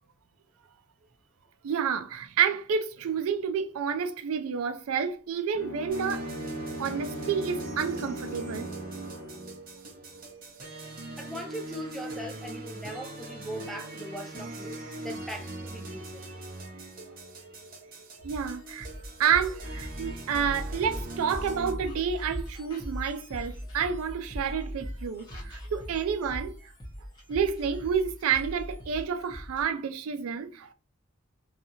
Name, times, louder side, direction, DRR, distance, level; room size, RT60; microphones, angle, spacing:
voice 1, 1.6-6.3 6.8-8.7 18.2-18.9 19.2-26.5 27.3-30.7, right 7 dB, 80° right, 0.4 m, -29 dB
Bowed string instrument, 5.5-9.6, right 2 dB, 65° left, 0.6 m, -39 dB
sound 1, 5.9-21.7, right 2 dB, 40° right, 0.7 m, -41 dB
voice 2, 11.2-14.8 15.0-16.2, equal, ahead, 0.3 m, -40 dB
sound 2, 18.2-29.6, equal, 20° left, 0.7 m, -40 dB
2.8 x 2.3 x 2.7 m
head